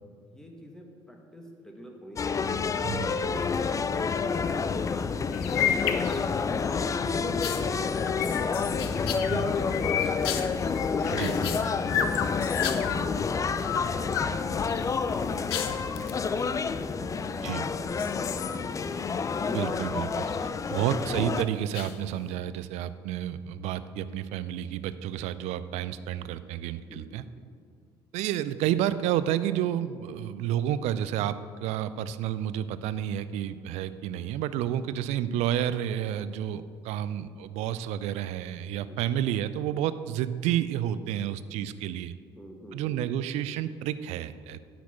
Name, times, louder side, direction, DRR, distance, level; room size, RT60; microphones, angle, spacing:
voice 1, 0.3-2.5 3.2-9.2 9.5-10.7 11.3-15.3 15.7-16.9 17.3-18.9 26.8-27.0 27.3-27.4 37.3-37.4 38.8-39.0 42.4-43.3, equal, 5° left, 1 dB, 1.9 m, -46 dB
sound 1, 2.2-21.4, left 5 dB, 25° left, 0.5 m, -29 dB
voice 2, 2.8-3.2 9.1-9.5 11.1-11.3 15.7-15.8 17.4-17.6 19.5-27.2 28.1-42.1 42.7-44.6, right 11 dB, 55° right, 14 dB, 0.5 m, -30 dB
sound 2, 5.3-6.5 6.9-13.0 13.5-14.3 14.7-16.2 17.0-17.5 17.9-19.9 20.2-20.9 21.7-22.3, left 9 dB, 70° left, 0.6 m, -33 dB
10.5 x 6.0 x 7.1 m, 2.1 s
figure-of-eight pair, 55°, 13 cm